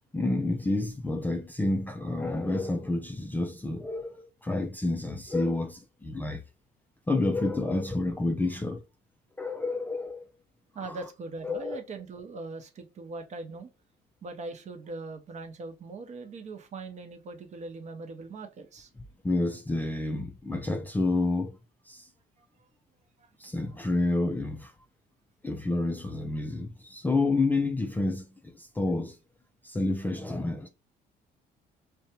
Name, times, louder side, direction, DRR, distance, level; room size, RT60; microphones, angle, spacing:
voice 1, 0.1-6.4 7.1-8.8 9.4-10.2 10.8-11.0 11.4-11.8 19.0-21.6 21.9-22.1 23.4-24.7 25.4-29.2 29.6-30.7, left 2 dB, 10° left, 0.3 m, -29 dB
voice 2, 10.7-13.7 14.2-18.9, right 3 dB, 45° right, 0.7 m, -40 dB
2.6 x 2.2 x 2.7 m
cardioid pair, 110°, 17 cm